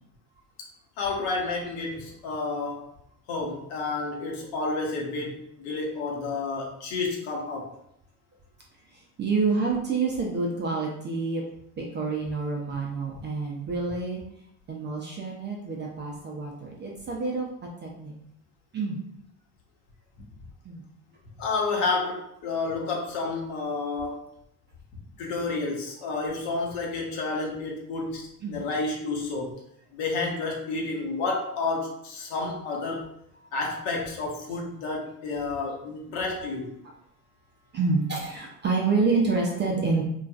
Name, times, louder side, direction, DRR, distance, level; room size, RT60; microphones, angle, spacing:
voice 1, 1.0-2.9 3.3-7.7 21.4-24.2 25.2-29.6 29.9-33.1 33.5-36.7, left 3 dB, 60° left, 0 dB, 1.0 m, -30 dB
voice 2, 9.2-11.4 11.8-14.2 14.7-17.5 17.8-18.1 18.7-19.0 20.7-20.8 28.4-28.6 37.7-40.0, right 4 dB, 25° right, -1 dB, 0.4 m, -27 dB
3.0 x 2.4 x 2.3 m, 0.74 s
hypercardioid pair, 85°, 47 cm